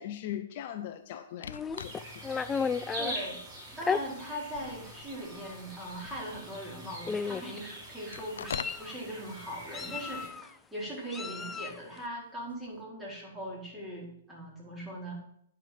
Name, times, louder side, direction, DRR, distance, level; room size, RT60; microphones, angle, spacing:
voice 1, 0.0-2.4, left 11 dB, 50° left, 7 dB, 0.8 m, -40 dB
sound 1, 1.4-2.2 2.8-2.9 3.8-4.1 4.4-6.6 8.1-8.9 12.5-12.8, left 7 dB, 80° left, 0.5 m, -43 dB
Meow, 1.5-3.1 3.8-4.0 4.9-5.0 5.3-5.6 6.6-6.7 7.1-7.6 8.2-8.9 9.7-10.5 11.1-11.8, left 5 dB, 15° left, 0.3 m, -33 dB
sound 2, 1.8-10.3, right 1 dB, 25° right, 4.5 m, -44 dB
voice 2, 3.0-3.4 3.7-15.1, equal, 5° right, -5 dB, 4.6 m, -40 dB
10.0 x 5.9 x 7.9 m, 0.71 s
hypercardioid pair, 135°, 0 cm